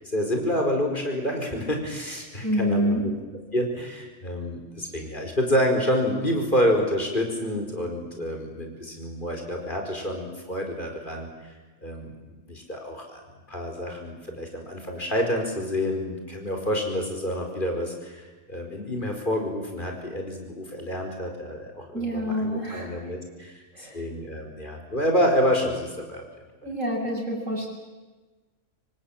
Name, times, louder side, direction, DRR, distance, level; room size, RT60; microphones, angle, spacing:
voice 1, 0.1-3.1 3.5-11.3 11.8-12.1 12.5-13.2 13.5-26.2, equal, 40° left, 3 dB, 5.2 m, -28 dB
voice 2, 2.4-3.1 21.9-22.9 23.7-24.0 26.6-27.7, equal, 80° right, -2 dB, 8.2 m, -27 dB
26.0 x 24.0 x 8.9 m, 1.3 s
omnidirectional pair, 1.3 m